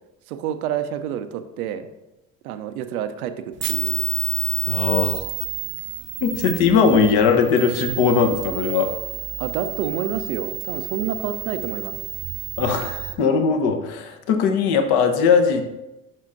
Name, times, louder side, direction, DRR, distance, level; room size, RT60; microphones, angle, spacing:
voice 1, 0.3-1.9 2.4-4.0 9.4-11.9, right 9 dB, 85° right, 9 dB, 0.6 m, -28 dB
sound 1, 3.6-13.1, right 15 dB, 30° right, 0.4 m, -29 dB
voice 2, 4.7-5.2 6.2-8.9 12.6-15.6, left 5 dB, 65° left, 6 dB, 1.0 m, -19 dB
12.0 x 5.7 x 2.6 m, 0.97 s
hypercardioid pair, 60°, 42 cm